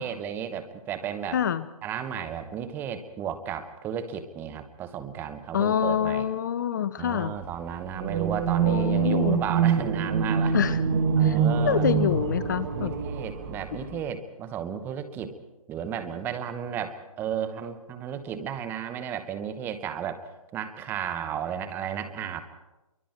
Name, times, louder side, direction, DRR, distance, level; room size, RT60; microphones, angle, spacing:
voice 1, 0.0-1.4 1.8-6.3 7.0-10.6 11.2-12.0 12.7-15.3 15.7-20.2 20.5-22.4, right 8 dB, 10° right, 9 dB, 1.0 m, -34 dB
voice 2, 1.3-1.7 5.5-7.3 8.6-9.4 10.5-10.8 11.2-11.4 11.6-12.9, left 9 dB, 30° left, 15 dB, 0.6 m, -26 dB
sound 1, 7.9-13.9, right 7 dB, 35° right, 2.2 m, -25 dB
27.0 x 23.5 x 4.5 m, 1.0 s
figure-of-eight pair, 150°, 19 cm